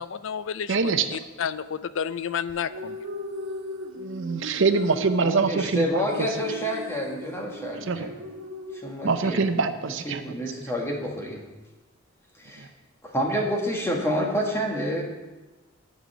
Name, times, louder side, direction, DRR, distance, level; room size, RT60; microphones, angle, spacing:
voice 1, 0.0-3.0, left 7 dB, 65° left, 15 dB, 0.4 m, -31 dB
voice 2, 0.7-1.2 4.0-6.4 7.8-8.1 9.0-10.2 12.6-12.7, right 4 dB, 65° right, 9 dB, 0.7 m, -25 dB
sound 1, 2.5-9.5, equal, 80° right, 1.4 m, -38 dB
voice 3, 5.2-8.1 8.7-9.4 10.0-11.4 12.4-12.7 13.0-15.0, equal, 15° left, -1 dB, 1.6 m, -28 dB
9.3 x 5.4 x 8.0 m, 1.2 s
head